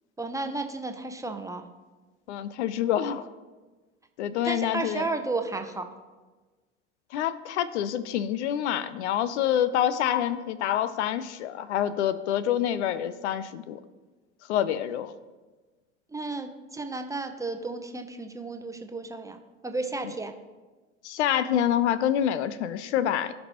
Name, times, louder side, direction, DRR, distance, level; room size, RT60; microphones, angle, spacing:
voice 1, 0.2-1.7 4.4-5.9 16.1-19.4 19.6-20.3, right 3 dB, 10° right, 6 dB, 0.7 m, -33 dB
voice 2, 2.3-3.3 4.2-5.0 7.1-13.8 14.5-15.1 21.0-23.3, left 10 dB, 70° left, 14 dB, 0.5 m, -27 dB
16.0 x 5.3 x 2.9 m, 1.3 s
hypercardioid pair, 75°, 35 cm